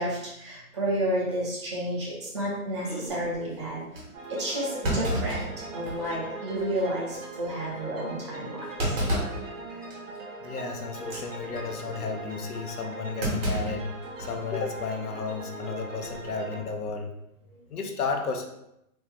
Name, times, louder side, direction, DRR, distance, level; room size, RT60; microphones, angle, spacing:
voice 1, 0.0-4.0 4.3-8.9 10.1-10.5 17.4-17.6, right 1 dB, 20° right, -5 dB, 0.6 m, -31 dB
Thump thud, 3.1-3.4 3.9-4.1 4.8-6.2 6.6-6.7 7.1-7.4 8.8-9.5 9.9-10.2 11.0-11.3 13.2-14.4 14.7-14.8 16.0-16.3, equal, 40° right, 1.2 m, -30 dB
sound 1, 4.1-16.6, right 3 dB, 60° right, 1.1 m, -40 dB
voice 2, 10.4-13.9 14.2-17.1 17.7-18.5, left 4 dB, 85° left, 5 dB, 0.7 m, -33 dB
3.1 x 2.1 x 3.5 m, 0.82 s
hypercardioid pair, 155°, 44 cm